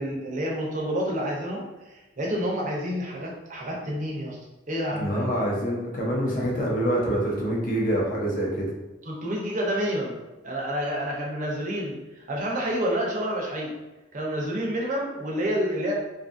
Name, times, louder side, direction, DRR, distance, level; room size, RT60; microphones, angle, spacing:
voice 1, 0.0-4.4 4.7-5.4 9.1-10.2 10.4-13.7 14.1-15.9, equal, 40° right, -2 dB, 0.5 m, -29 dB
voice 2, 5.0-8.7, right 1 dB, 45° left, -3 dB, 0.7 m, -26 dB
2.6 x 2.4 x 2.5 m, 1.1 s
head